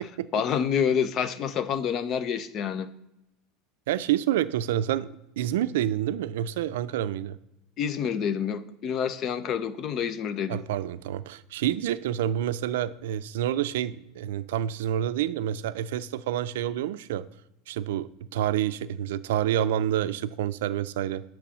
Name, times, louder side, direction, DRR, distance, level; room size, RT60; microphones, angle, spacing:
voice 1, 0.3-2.9 7.8-10.6, left 7 dB, 40° left, 13 dB, 0.5 m, -28 dB
voice 2, 3.9-7.4 10.5-17.3 17.7-21.2, right 11 dB, 90° right, 14 dB, 0.3 m, -28 dB
8.3 x 3.1 x 6.1 m, 0.87 s
supercardioid pair, 140°, 0 cm